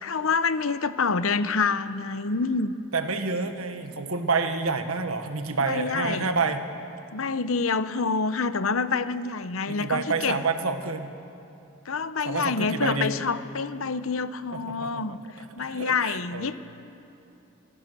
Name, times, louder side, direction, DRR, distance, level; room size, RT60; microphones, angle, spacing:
voice 1, 0.0-2.7 5.7-6.3 7.1-10.4 11.9-15.2 15.6-16.6, left 4 dB, 70° left, 13 dB, 0.8 m, -27 dB
voice 2, 2.9-6.6 9.7-11.1 12.2-13.1 14.8-14.9 15.5-16.6, right 4 dB, 80° right, 7 dB, 1.5 m, -28 dB
25.0 x 16.5 x 6.8 m, 2.7 s
head